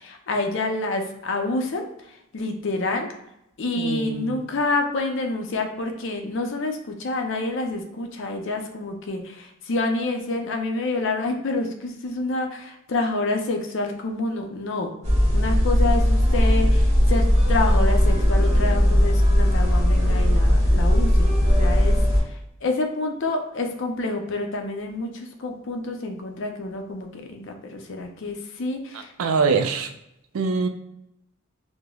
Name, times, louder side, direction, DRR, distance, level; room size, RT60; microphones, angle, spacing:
voice 1, 0.0-1.8 2.3-3.1 3.6-14.9 15.3-22.0 22.3-22.4 22.6-29.1, left 2 dB, 60° left, 4 dB, 0.5 m, -28 dB
voice 2, 3.8-4.4 28.9-29.9 30.3-30.7, right 4 dB, 85° right, 6 dB, 0.4 m, -24 dB
sound 1, 15.0-22.2, equal, 30° right, 1.0 m, -18 dB
4.9 x 2.0 x 2.2 m, 0.83 s
head